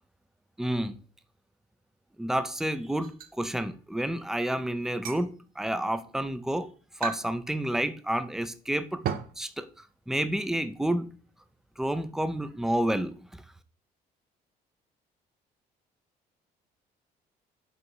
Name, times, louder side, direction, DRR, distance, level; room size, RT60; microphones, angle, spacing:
voice 1, 0.6-1.0 2.2-9.0 9.4-9.7 10.1-11.2 11.8-13.4, right 1 dB, 5° right, 0.5 m, -30 dB
sound 1, 3.0-3.3 4.8-5.3 6.1-6.2 7.0-7.3 7.6-7.7 9.0-9.4, right 8 dB, 60° right, 0.6 m, -34 dB
5.6 x 3.9 x 5.3 m
cardioid pair, 110°, 17 cm